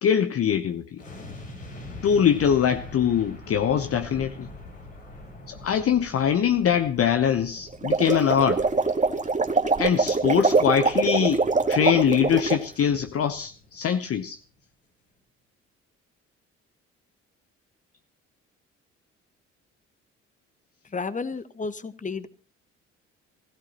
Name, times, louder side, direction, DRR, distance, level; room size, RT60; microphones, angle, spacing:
voice 1, 0.0-1.0 2.0-4.5 5.5-8.7 9.8-11.4 11.7-14.4, left 8 dB, 40° left, 0.9 m, -23 dB
sound 1, 1.0-14.1 14.4-14.6, left 2 dB, 85° left, 4.6 m, -44 dB
sound 2, 7.7-12.6, right 4 dB, 20° right, 1.7 m, -23 dB
voice 2, 20.8-22.3, left 4 dB, 20° left, 1.3 m, -32 dB
21.0 x 16.5 x 2.9 m
figure-of-eight pair, 45°, 37 cm